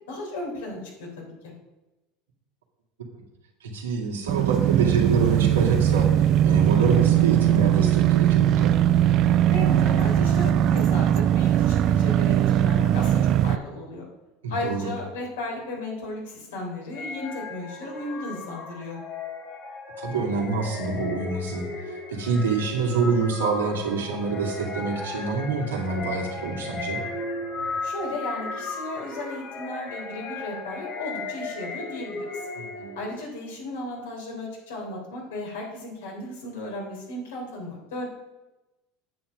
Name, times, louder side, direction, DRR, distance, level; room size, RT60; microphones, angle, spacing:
voice 1, 0.1-1.5 9.5-14.0 14.5-19.0 27.8-32.2 32.9-38.1, left 1 dB, 80° left, 0 dB, 3.3 m, -35 dB
voice 2, 3.6-6.1 6.4-8.8 14.4-14.9 20.0-27.0 32.6-33.0, right 4 dB, 90° right, -1 dB, 2.2 m, -26 dB
sound 1, 4.3-13.6, right 11 dB, 50° right, 0.4 m, -20 dB
sound 2, 16.9-33.1, left 3 dB, 40° left, 2.0 m, -36 dB
9.1 x 7.7 x 5.0 m, 1.0 s
hypercardioid pair, 90°, 0 cm